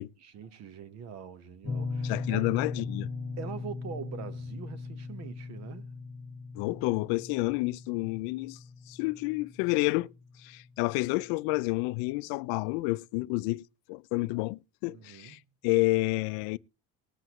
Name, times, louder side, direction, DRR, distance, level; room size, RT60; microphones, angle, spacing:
voice 1, 0.2-2.5 3.4-5.9 14.9-15.4, right 7 dB, 40° right, 1.0 m, -43 dB
sound 1, 1.6-10.4, left 4 dB, 20° left, 1.2 m, -38 dB
voice 2, 2.0-3.1 6.5-8.6 8.9-10.1 10.4-13.6 13.9-16.6, left 22 dB, 70° left, 0.5 m, -29 dB
20.0 x 7.8 x 3.0 m
cardioid pair, 170°, 40 cm